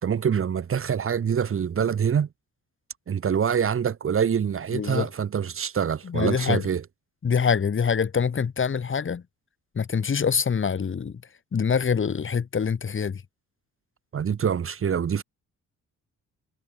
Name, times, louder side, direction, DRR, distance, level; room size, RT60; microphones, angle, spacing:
voice 1, 0.0-2.3 3.1-6.8 14.1-15.2, right 7 dB, 45° right, 1.8 m, -25 dB
voice 2, 4.7-5.1 6.0-6.7 7.2-9.2 9.7-11.1 11.5-13.2, left 6 dB, 40° left, 4.8 m, -25 dB
cardioid pair, 90°, 30 cm